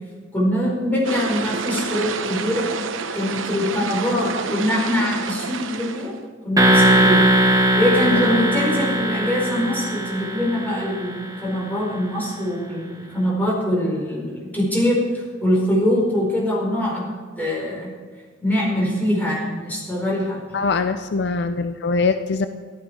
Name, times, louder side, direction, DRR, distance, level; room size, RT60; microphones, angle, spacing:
voice 1, 0.3-2.7 3.1-6.1 6.4-7.3 7.8-17.1 17.4-17.9 18.4-20.4, left 1 dB, 10° left, -4 dB, 4.8 m, -23 dB
sound 1, 1.0-6.2, right 5 dB, 80° right, 0.8 m, -29 dB
sound 2, 6.6-11.5, right 1 dB, 20° right, 1.3 m, -19 dB
voice 2, 20.5-22.5, left 4 dB, 60° left, 9 dB, 0.5 m, -22 dB
14.0 x 12.5 x 4.8 m, 1.5 s
head